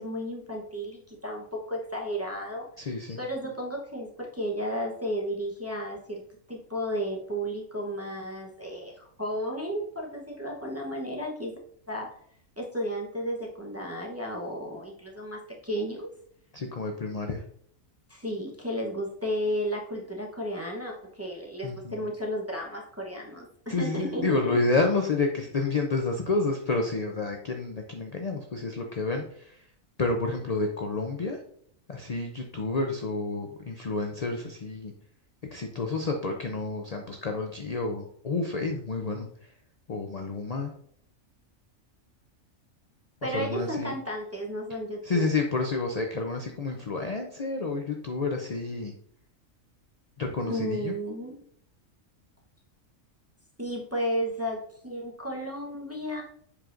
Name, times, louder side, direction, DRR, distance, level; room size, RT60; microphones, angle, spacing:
voice 1, 0.0-6.2 6.5-11.6 11.9-12.1 12.6-16.1 18.1-24.6 43.2-45.3 50.5-51.4 53.6-56.2, equal, 15° right, -2 dB, 0.8 m, -33 dB
voice 2, 2.8-3.2 16.5-17.4 21.6-22.1 23.7-29.6 30.0-31.4 31.9-34.9 35.5-39.3 39.9-40.7 43.2-43.9 45.0-48.9 50.2-50.9, left 3 dB, 45° left, 3 dB, 0.5 m, -29 dB
7.5 x 4.9 x 2.5 m, 0.63 s
omnidirectional pair, 1.4 m